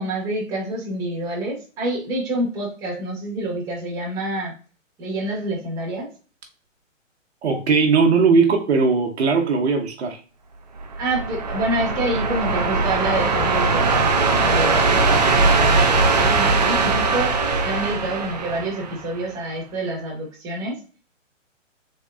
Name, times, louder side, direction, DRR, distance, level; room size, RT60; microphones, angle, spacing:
voice 1, 0.0-4.5 5.0-6.1 11.0-17.4 17.6-20.8, right 1 dB, 10° right, -4 dB, 0.9 m, -27 dB
voice 2, 7.4-10.2, right 4 dB, 55° right, 2 dB, 0.8 m, -18 dB
sound 1, 10.8-19.3, right 3 dB, 35° right, 0.4 m, -20 dB
3.5 x 2.9 x 2.3 m, 0.35 s
hypercardioid pair, 145°, 39 cm